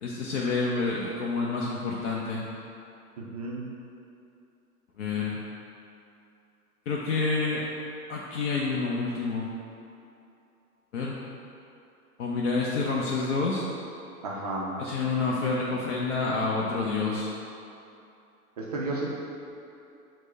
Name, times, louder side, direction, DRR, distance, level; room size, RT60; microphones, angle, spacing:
voice 1, 0.0-2.4 5.0-5.4 6.9-7.6 8.1-9.5 10.9-11.2 12.2-13.6 14.8-17.3, left 4 dB, 55° left, -4 dB, 0.6 m, -28 dB
voice 2, 3.2-3.7 14.2-14.8 18.6-19.1, right 2 dB, 30° right, -4 dB, 0.4 m, -32 dB
6.2 x 2.1 x 3.8 m, 2.7 s
figure-of-eight pair, 110°, 45 cm